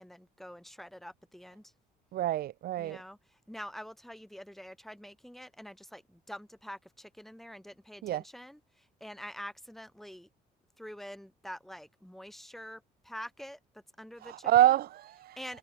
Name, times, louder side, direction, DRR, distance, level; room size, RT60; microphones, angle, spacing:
voice 1, 0.0-1.7 2.8-10.3 10.8-13.6 14.0-14.7 15.4-15.6, equal, ahead, 6.9 m, -46 dB
voice 2, 2.1-3.0 8.0-8.2 14.2-15.4, right 13 dB, 65° right, 1.4 m, -27 dB
cardioid pair, 110°, 17 cm